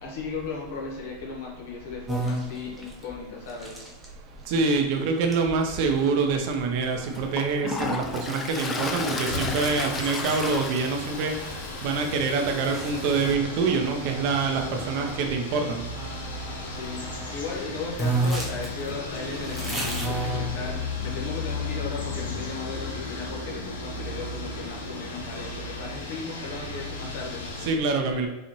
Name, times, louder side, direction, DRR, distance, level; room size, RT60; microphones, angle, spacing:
voice 1, 0.0-3.8 16.6-27.5, left 4 dB, 65° left, -1 dB, 1.2 m, -36 dB
sound 1, 2.1-15.2 15.9-17.3 17.6-17.7 18.0-21.1, right 2 dB, 5° right, 0.9 m, -35 dB
voice 2, 4.5-11.3 11.8-15.8 27.7-28.3, right 4 dB, 60° right, 4 dB, 0.6 m, -25 dB
Toilet flush, 6.5-6.6 7.2-13.4, left 3 dB, 25° left, 0.5 m, -34 dB
sound 2, 8.7-27.7, left 3 dB, 80° left, 0.8 m, -35 dB
4.2 x 2.4 x 3.0 m, 1.1 s
hypercardioid pair, 105°, 0 cm